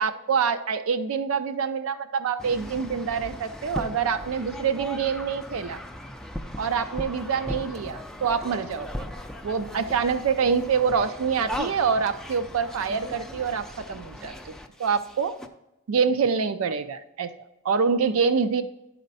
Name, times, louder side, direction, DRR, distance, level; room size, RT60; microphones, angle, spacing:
voice 1, 0.0-5.8 6.6-8.9 9.4-14.5 14.8-15.3 15.9-18.6, right 6 dB, 70° right, 10 dB, 0.4 m, -26 dB
sound 1, 2.4-15.5, equal, 5° left, 0.4 m, -38 dB
10.5 x 4.3 x 4.0 m, 0.92 s
head